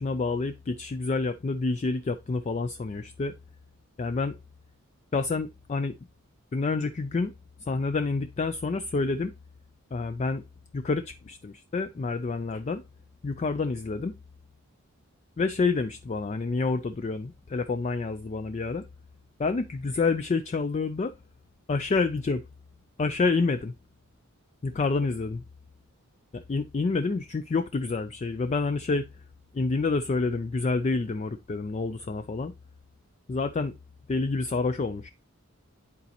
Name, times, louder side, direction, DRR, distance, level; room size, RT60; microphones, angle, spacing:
voice 1, 0.0-3.3 4.0-4.4 5.1-5.9 6.5-7.3 7.6-9.3 9.9-10.4 10.7-12.8 13.2-14.1 15.4-18.9 19.4-21.1 21.7-22.5 23.0-23.7 24.6-25.4 26.3-29.1 29.5-32.5 33.3-33.7 34.1-35.1, left 3 dB, 30° left, 0.3 m, -28 dB
10.5 x 4.1 x 2.8 m
head